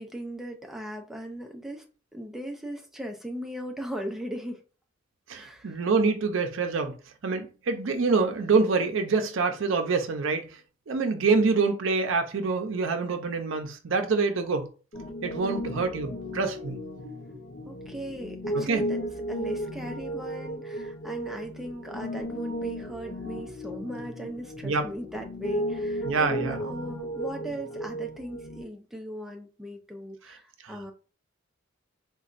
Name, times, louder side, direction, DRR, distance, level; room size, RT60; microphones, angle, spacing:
voice 1, 0.0-1.8 2.1-4.6 5.3-5.8 15.5-15.8 17.7-19.0 19.3-30.9, right 1 dB, ahead, 0.5 m, -38 dB
voice 2, 5.3-7.0 7.2-10.5 10.9-14.7 15.2-16.8 18.5-18.9 24.6-24.9 26.0-26.6 30.6-30.7, right 4 dB, 80° right, 0.5 m, -26 dB
Piano, 14.9-28.6, equal, 50° left, 0.6 m, -35 dB
4.1 x 2.3 x 2.5 m
head